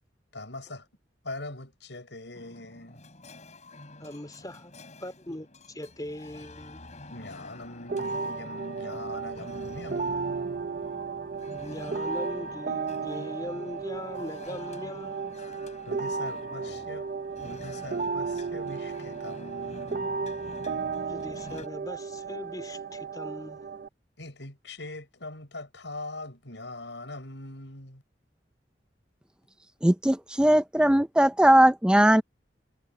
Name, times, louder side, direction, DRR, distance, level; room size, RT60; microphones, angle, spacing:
voice 1, 0.3-0.9 1.2-3.0 7.1-10.7 15.9-17.1 17.4-20.2 24.2-28.0, left 2 dB, 75° left, 6.5 m, -42 dB
sound 1, 2.3-21.7, left 1 dB, 40° left, 5.3 m, -47 dB
voice 2, 4.0-4.7 5.0-6.8 11.5-15.4 21.1-23.8, left 1 dB, 20° left, 3.6 m, -40 dB
sound 2, 7.9-23.9, right 5 dB, 50° right, 0.7 m, -34 dB
voice 3, 29.8-32.2, right 1 dB, 5° right, 0.5 m, -19 dB
head